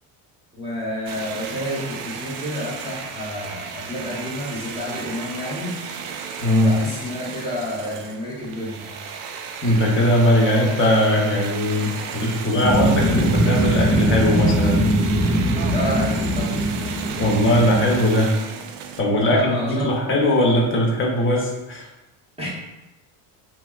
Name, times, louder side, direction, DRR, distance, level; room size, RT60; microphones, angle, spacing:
voice 1, 0.5-5.8 6.6-9.0 15.7-16.6 19.2-19.9 22.4-22.5, left 1 dB, 15° right, -6 dB, 0.9 m, -29 dB
sound 1, 1.1-19.0, right 6 dB, 80° right, 0.5 m, -34 dB
voice 2, 6.4-6.8 9.6-14.9 17.2-18.3 19.0-21.9, left 1 dB, 30° left, -1 dB, 0.8 m, -19 dB
sound 2, 12.6-18.2, right 1 dB, 5° left, 0.3 m, -21 dB
3.3 x 2.9 x 2.3 m, 0.98 s
supercardioid pair, 105°, 44 cm